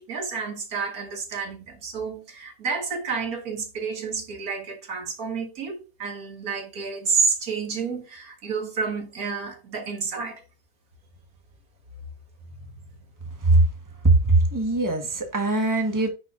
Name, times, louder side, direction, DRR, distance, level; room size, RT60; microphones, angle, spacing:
voice 1, 0.0-10.4, right 5 dB, 85° right, 2.0 m, -30 dB
voice 2, 14.0-16.1, right 2 dB, 15° right, 1.2 m, -20 dB
10.0 x 4.6 x 2.5 m
omnidirectional pair, 1.5 m